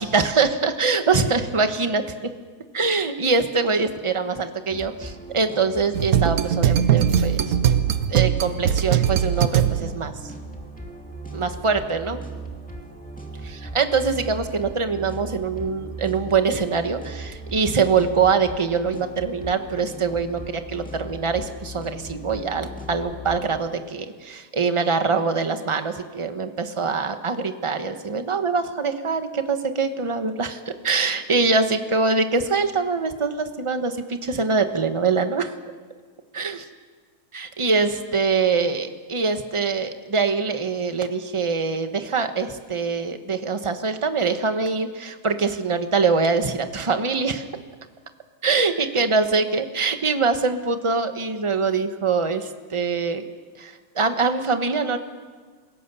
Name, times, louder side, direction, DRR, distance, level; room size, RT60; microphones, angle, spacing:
voice 1, 0.0-2.0 2.7-7.4 8.1-10.1 11.3-12.2 13.4-35.5 36.3-36.6 37.3-47.4 48.4-53.2 53.6-55.0, right 4 dB, 20° right, 8 dB, 0.9 m, -23 dB
sound 1, 4.7-23.6, right 1 dB, 5° left, 2.2 m, -38 dB
sound 2, 5.9-10.1, right 9 dB, 60° right, 1.0 m, -20 dB
28.0 x 17.0 x 7.0 m, 1.5 s
omnidirectional pair, 2.3 m